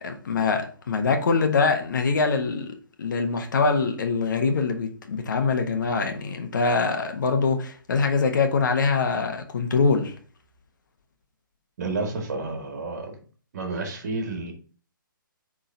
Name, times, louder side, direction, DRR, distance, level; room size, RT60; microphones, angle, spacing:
voice 1, 0.0-10.1, left 4 dB, 60° left, 1.2 m, -24 dB
voice 2, 11.8-13.2 13.5-14.5, right 3 dB, 50° right, 1.9 m, -30 dB
10.0 x 3.7 x 2.7 m
hypercardioid pair, 140°, 11 cm